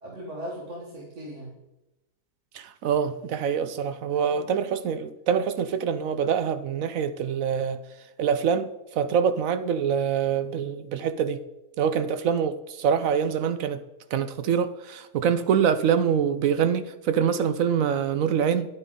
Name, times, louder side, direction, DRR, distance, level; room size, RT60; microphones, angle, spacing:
voice 1, 0.0-1.6 4.1-4.5, equal, 50° right, -2 dB, 1.8 m, -39 dB
voice 2, 2.5-7.8 8.2-11.4 11.8-13.8 14.1-18.7, right 7 dB, 70° right, 11 dB, 1.0 m, -25 dB
9.9 x 9.1 x 3.7 m, 0.98 s
omnidirectional pair, 1.6 m